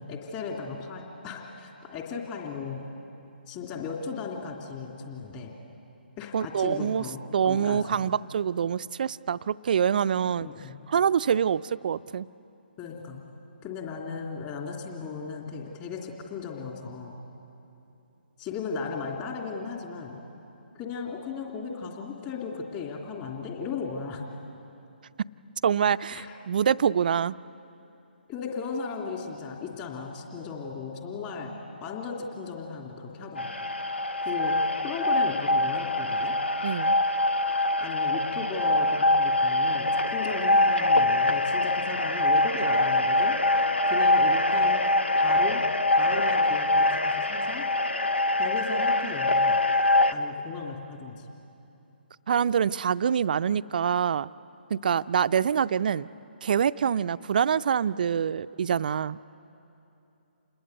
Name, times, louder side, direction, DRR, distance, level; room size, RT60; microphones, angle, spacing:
voice 1, 0.0-2.8 3.5-5.5 6.2-8.1 10.4-10.8 12.8-13.2 13.6-17.2 18.4-20.2 20.8-24.2 26.1-26.4 28.3-31.5 31.8-33.5 34.2-36.3 37.8-43.4 43.9-44.8 45.1-45.6 45.9-47.7 48.3-49.6 50.1-51.3, left 5 dB, 25° left, 0 dB, 3.1 m, -36 dB
voice 2, 6.3-7.0 7.3-10.5 10.9-12.3 25.6-27.4 36.6-37.0 52.3-54.3 54.7-56.1 56.4-59.2, right 8 dB, 50° right, 15 dB, 0.5 m, -25 dB
sound 1, 33.4-50.1, left 1 dB, 85° left, 1.1 m, -24 dB
28.0 x 20.5 x 8.1 m, 2.9 s
figure-of-eight pair, 140°, 6 cm